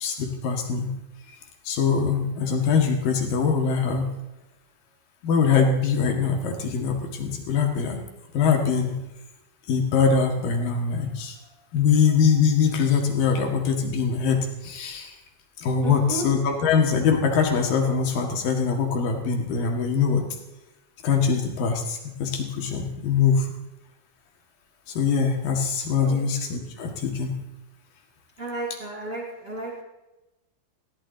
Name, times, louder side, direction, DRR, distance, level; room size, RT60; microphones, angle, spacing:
voice 1, 0.0-0.9 1.3-1.4 1.6-4.1 5.2-8.0 8.3-9.0 9.7-11.4 11.7-15.1 15.6-20.2 21.0-23.5 24.9-27.4, left 6 dB, 60° left, 2 dB, 2.7 m, -23 dB
voice 2, 15.8-16.3 26.0-26.3 28.4-29.8, right 2 dB, 10° right, -5 dB, 7.3 m, -33 dB
21.0 x 15.5 x 3.9 m, 0.98 s
omnidirectional pair, 5.9 m